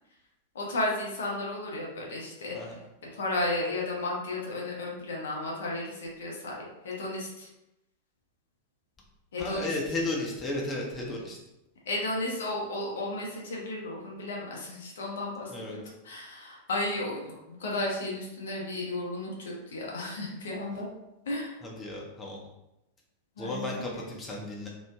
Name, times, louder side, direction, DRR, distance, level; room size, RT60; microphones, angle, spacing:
voice 1, 0.5-2.8 3.1-7.5 9.3-9.7 11.9-20.9 21.3-21.6 23.4-23.8, left 2 dB, 65° left, -2 dB, 0.8 m, -34 dB
voice 2, 9.4-11.4 15.5-15.8 21.6-22.4 23.4-24.7, left 2 dB, 20° left, -2 dB, 0.6 m, -34 dB
3.1 x 2.1 x 3.4 m, 0.89 s
figure-of-eight pair, 90°, 0 cm